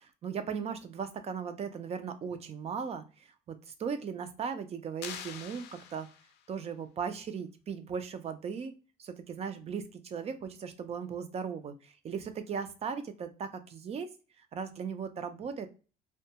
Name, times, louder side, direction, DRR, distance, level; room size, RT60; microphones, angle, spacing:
voice 1, 0.0-3.3 3.7-6.1 6.5-8.7 9.0-14.1 14.4-15.7, right 6 dB, 40° right, 9 dB, 0.4 m, -37 dB
sound 1, 5.0-6.5, left 8 dB, 80° left, 0.4 m, -44 dB
2.2 x 2.2 x 2.7 m, 0.34 s
cardioid pair, 110°, 17 cm